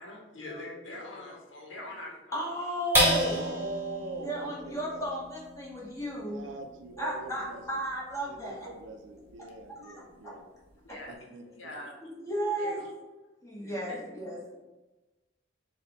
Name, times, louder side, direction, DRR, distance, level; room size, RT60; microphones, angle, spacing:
voice 1, 0.0-2.6 10.8-11.2 11.5-12.0 12.6-12.9 13.6-14.0, left 1 dB, 85° left, 0 dB, 0.9 m, -43 dB
voice 2, 2.3-3.4 4.2-6.4 7.0-8.7 9.8-10.0 12.0-12.8 13.4-14.6, equal, 15° left, -5 dB, 1.1 m, -34 dB
sound 1, 2.9-9.6 10.1-10.2 10.6-11.1, equal, 10° right, 1.1 m, -33 dB
voice 3, 3.4-5.1 6.2-7.8 8.3-10.4 11.1-11.7, right 3 dB, 80° right, 5 dB, 0.5 m, -42 dB
4.2 x 2.3 x 4.0 m, 1.1 s
head